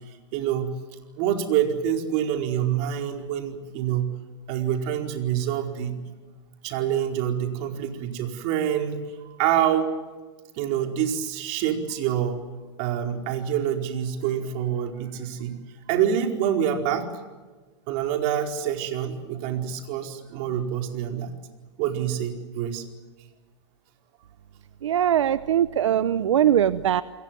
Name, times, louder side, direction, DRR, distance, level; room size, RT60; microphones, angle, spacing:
voice 1, 0.3-0.7 1.2-4.1 4.5-6.0 6.6-9.0 9.2-9.9 10.6-12.5 12.8-15.6 15.9-17.1 17.9-21.4 21.8-22.8, right 9 dB, 50° right, 4 dB, 4.7 m, -26 dB
voice 2, 24.8-27.0, right 10 dB, 85° right, 15 dB, 0.8 m, -21 dB
29.5 x 22.0 x 7.7 m, 1.3 s
hypercardioid pair, 130°, 15 cm